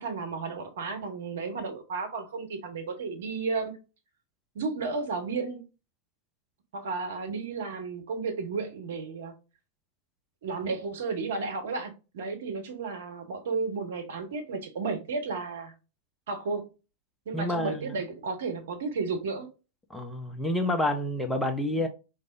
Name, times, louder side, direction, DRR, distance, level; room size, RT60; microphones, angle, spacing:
voice 1, 0.0-3.8 4.5-5.7 6.7-9.3 10.4-15.7 16.3-16.6 17.3-19.5 21.7-21.8, right 4 dB, 60° right, 1.0 m, -33 dB
voice 2, 17.3-17.9 19.9-21.9, left 1 dB, 5° left, 0.6 m, -28 dB
4.8 x 2.6 x 2.5 m
figure-of-eight pair, 90°, 0 cm